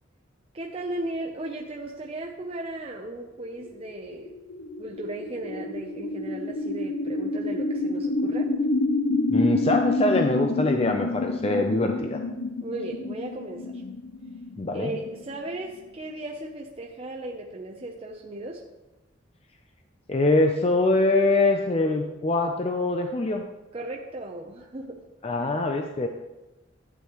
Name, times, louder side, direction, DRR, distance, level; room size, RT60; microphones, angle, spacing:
voice 1, 0.5-4.4 4.8-8.5 12.6-13.8 14.7-18.6 23.7-25.0, right 1 dB, 30° right, 0 dB, 0.6 m, -36 dB
sound 1, 3.7-15.8, left 2 dB, 75° left, 0.7 m, -28 dB
voice 2, 9.3-12.2 14.6-15.0 20.1-23.4 25.2-26.1, left 2 dB, 30° left, 4 dB, 0.5 m, -23 dB
11.5 x 8.4 x 3.1 m, 1.1 s
head